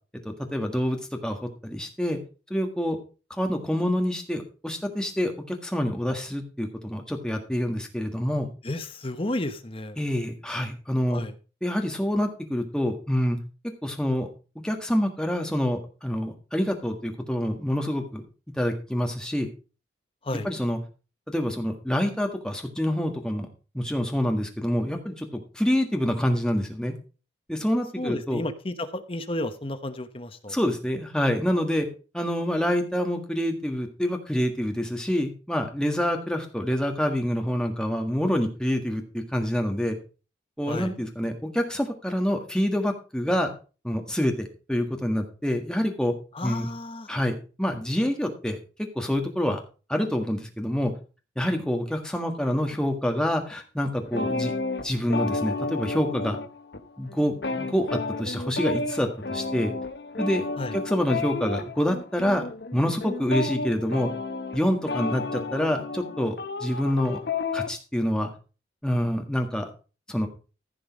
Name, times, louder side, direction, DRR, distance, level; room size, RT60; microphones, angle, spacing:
voice 1, 0.2-2.2 2.5-3.0 3.3-8.5 10.0-11.2 11.6-13.4 13.8-14.3 14.6-18.2 18.6-19.5 20.3-20.8 21.3-23.5 23.7-26.9 27.5-28.4 30.5-31.9 32.1-40.0 40.6-43.5 43.8-46.1 46.4-46.7 47.1-47.3 47.6-48.6 48.9-49.6 49.9-50.9 51.3-54.5 54.8-56.4 57.0-59.7 60.2-60.4 60.7-62.4 62.7-64.1 64.5-66.3 66.6-67.2 67.5-68.3 68.8-69.7 70.1-70.3, equal, 5° left, 3 dB, 1.6 m, -27 dB
voice 2, 8.6-10.0 11.1-11.3 20.2-20.5 28.0-30.6 40.7-40.9 46.3-47.1 60.6-60.7, left 1 dB, 30° left, 9 dB, 1.0 m, -32 dB
sound 1, 54.1-56.8 57.1-67.7, left 3 dB, 65° left, 1.0 m, -32 dB
15.0 x 5.4 x 5.1 m, 0.35 s
head